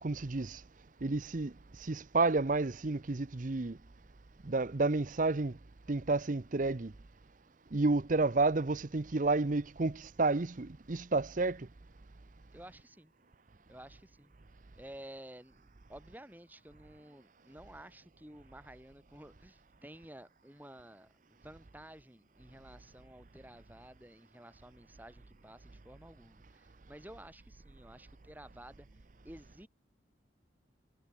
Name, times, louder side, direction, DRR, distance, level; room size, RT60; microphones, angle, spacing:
voice 1, 0.0-0.6 1.0-3.8 4.4-5.6 5.9-6.9 7.7-11.7, right 3 dB, 45° right, 0.7 m, -31 dB
voice 2, 12.5-13.1 13.7-14.3 14.8-21.1 21.4-28.9 29.2-29.7, right 1 dB, 10° right, 6.0 m, -53 dB
head